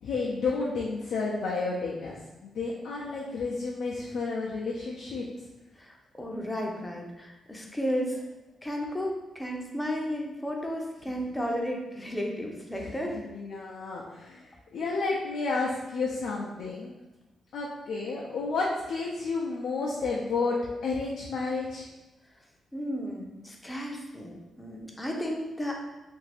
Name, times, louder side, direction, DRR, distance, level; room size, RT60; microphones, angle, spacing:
voice 1, 0.0-5.3 12.7-12.9 13.3-14.5 14.7-16.9 17.5-21.9, left 3 dB, 75° left, -4 dB, 0.4 m, -31 dB
voice 2, 5.8-8.2 8.6-13.2 22.7-25.7, equal, 15° left, 0 dB, 0.6 m, -33 dB
2.6 x 2.5 x 3.3 m, 1.0 s
cardioid pair, 75°, 0 cm